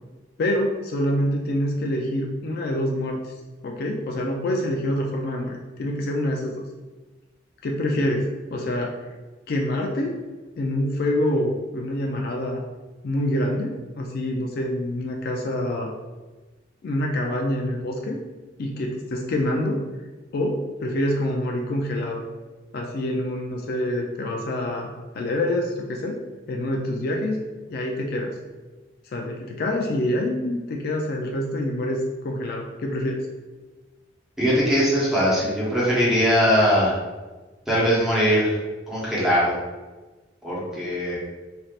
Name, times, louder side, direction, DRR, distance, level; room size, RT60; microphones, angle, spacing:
voice 1, 0.4-3.3 3.6-6.6 7.6-9.1 9.5-10.2 10.6-12.6 13.0-15.9 16.8-18.2 18.6-19.8 20.3-22.2 22.7-26.2 26.5-27.4 27.7-28.4 29.1-33.3, left 1 dB, 55° left, 1 dB, 0.3 m, -26 dB
voice 2, 34.4-37.0 37.7-38.6 38.9-39.6 40.4-41.2, equal, 5° right, -8 dB, 1.0 m, -21 dB
3.2 x 2.7 x 2.4 m, 1.2 s
head